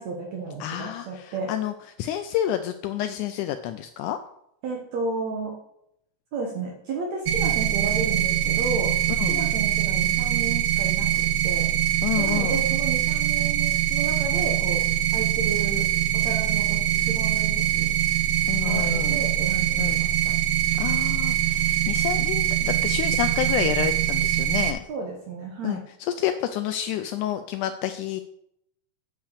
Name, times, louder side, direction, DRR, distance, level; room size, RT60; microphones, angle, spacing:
voice 1, 0.0-1.5 4.6-5.5 6.3-8.9 9.3-11.7 12.2-14.8 15.1-15.9 16.2-17.9 18.6-20.4 24.9-25.8, right 3 dB, 65° right, 0 dB, 2.3 m, -33 dB
voice 2, 0.6-4.2 9.2-9.4 12.0-12.6 18.5-19.2 19.8-20.0 20.8-24.8 25.6-28.2, left 11 dB, 80° left, 9 dB, 1.9 m, -29 dB
sound 1, 7.3-24.7, right 11 dB, 85° right, 1.3 m, -23 dB
8.7 x 5.6 x 6.6 m, 0.76 s
omnidirectional pair, 3.8 m